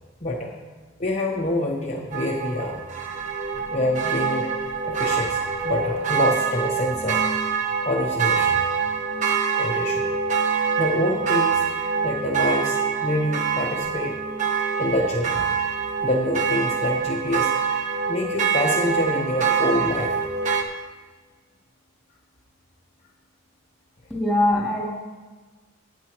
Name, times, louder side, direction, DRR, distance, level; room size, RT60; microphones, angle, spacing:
voice 1, 0.2-0.5 1.0-2.8 3.7-4.5 4.8-7.2 7.8-8.6 9.6-10.1 10.8-11.6 12.0-14.2 14.8-15.5 16.0-17.5 18.1-20.2 24.8-24.9, left 1 dB, 35° left, -2 dB, 0.9 m, -26 dB
sound 1, 2.1-20.6, right 6 dB, 35° right, 1.0 m, -25 dB
voice 2, 24.1-24.9, left 1 dB, ahead, -6 dB, 3.0 m, -22 dB
18.0 x 8.2 x 3.0 m, 1.4 s
head